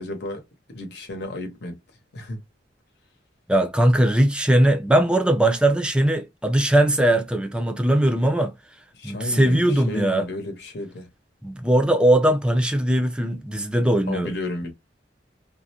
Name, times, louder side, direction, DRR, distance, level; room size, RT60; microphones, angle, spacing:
voice 1, 0.0-1.8 2.1-2.4 8.9-11.1 14.1-14.7, left 1 dB, 60° left, 0.8 m, -33 dB
voice 2, 3.5-8.5 9.0-10.2 11.4-14.3, right 1 dB, 5° right, 0.4 m, -20 dB
2.4 x 2.1 x 2.7 m
head